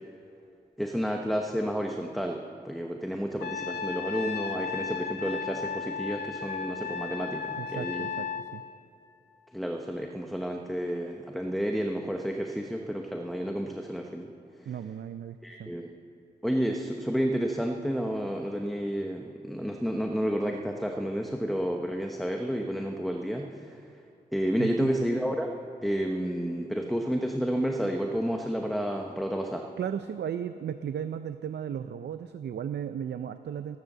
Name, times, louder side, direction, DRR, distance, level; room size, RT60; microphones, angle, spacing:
voice 1, 0.8-8.1 9.5-14.3 15.4-15.9 16.4-23.8 24.3-25.5 25.8-29.7, equal, ahead, 2 dB, 0.9 m, -30 dB
Trumpet, 3.4-8.5, left 6 dB, 75° left, 1.3 m, -35 dB
voice 2, 7.6-8.3 8.5-8.6 14.7-15.7 24.6-24.9 29.8-33.8, right 8 dB, 80° right, 10 dB, 0.5 m, -35 dB
14.5 x 14.5 x 6.7 m, 2.7 s
wide cardioid pair, 115°, 17 cm